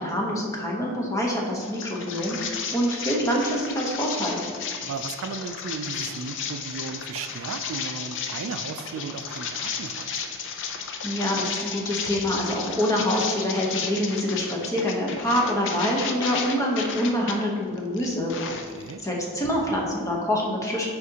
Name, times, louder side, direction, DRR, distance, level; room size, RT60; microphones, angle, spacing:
voice 1, 0.0-4.4 11.0-18.3 19.0-20.9, equal, 15° left, -2 dB, 0.9 m, -26 dB
sound 1, 1.6-17.4 17.8-19.1, left 6 dB, 55° left, 0.5 m, -33 dB
voice 2, 4.8-10.2 18.5-19.0, right 5 dB, 65° right, 9 dB, 0.4 m, -35 dB
8.2 x 5.1 x 2.8 m, 2.1 s
head